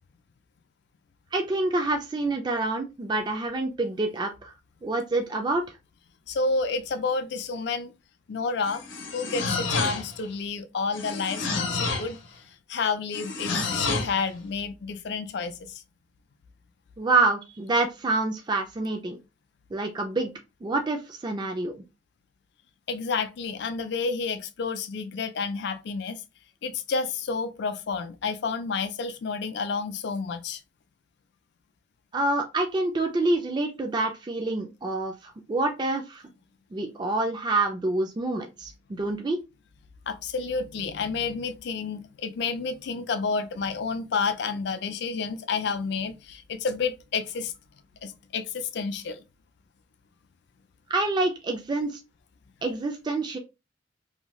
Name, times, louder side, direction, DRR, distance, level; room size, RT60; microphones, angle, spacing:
voice 1, 1.3-4.5 4.8-5.6 17.0-19.2 19.7-20.3 20.6-21.7 32.1-36.2 36.7-39.4 50.9-52.0 52.6-53.4, right 2 dB, 25° right, 0.3 m, -27 dB
voice 2, 6.3-7.9 8.3-8.8 9.1-12.2 12.7-15.7 22.9-26.2 26.6-30.6 40.1-47.5 48.0-49.2, left 4 dB, 60° left, 0.4 m, -30 dB
sound 1, 8.6-10.2 10.9-12.2 13.1-14.2, left 3 dB, 90° left, 0.7 m, -29 dB
2.7 x 2.2 x 3.0 m
head